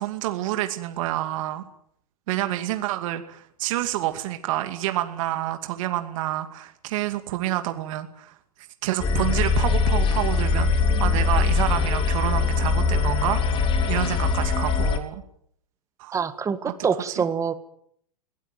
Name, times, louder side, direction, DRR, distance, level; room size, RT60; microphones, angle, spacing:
voice 1, 0.0-1.6 2.3-8.3 8.8-15.2 16.0-16.2 17.2-17.3, right 14 dB, 55° right, 7 dB, 2.5 m, -28 dB
sound 1, 9.0-15.0, left 4 dB, 25° left, 3.6 m, -22 dB
voice 2, 16.1-17.5, right 6 dB, 15° right, 12 dB, 1.7 m, -25 dB
22.5 x 18.0 x 9.3 m, 0.69 s
hypercardioid pair, 130°, 20 cm